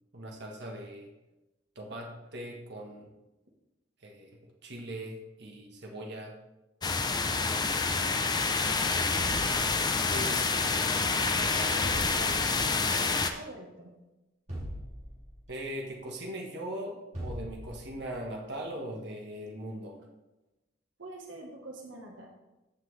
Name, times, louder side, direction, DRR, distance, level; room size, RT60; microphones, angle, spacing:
voice 1, 0.1-1.1 1.7-3.1 4.0-6.3 10.1-10.6 15.5-20.0, right 1 dB, 60° right, 0 dB, 1.5 m, -40 dB
sound 1, 6.8-13.3, left 4 dB, 20° left, 0.6 m, -28 dB
voice 2, 7.6-9.4 10.2-10.9 11.5-12.5 12.9-13.9 21.0-22.3, right 1 dB, 80° right, 1 dB, 1.4 m, -47 dB
sound 2, 9.2-10.3 11.8-12.8 14.5-15.6 17.1-18.1, equal, 35° right, 2.7 m, -40 dB
15.0 x 6.0 x 3.3 m, 1.0 s
head